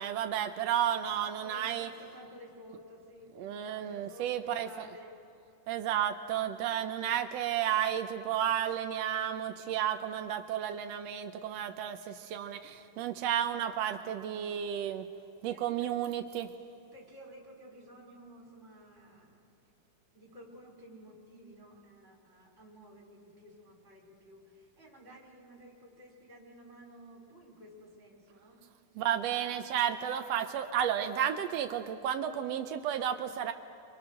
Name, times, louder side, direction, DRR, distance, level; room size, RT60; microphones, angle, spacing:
voice 1, 0.0-1.9 3.4-4.7 5.7-15.1 15.4-16.5 29.0-33.5, right 10 dB, 85° right, 7 dB, 1.4 m, -32 dB
voice 2, 1.4-5.2 15.5-15.9 16.9-19.5 20.1-28.6, equal, 20° right, -3 dB, 5.0 m, -53 dB
29.0 x 24.5 x 6.5 m, 2.5 s
omnidirectional pair, 3.9 m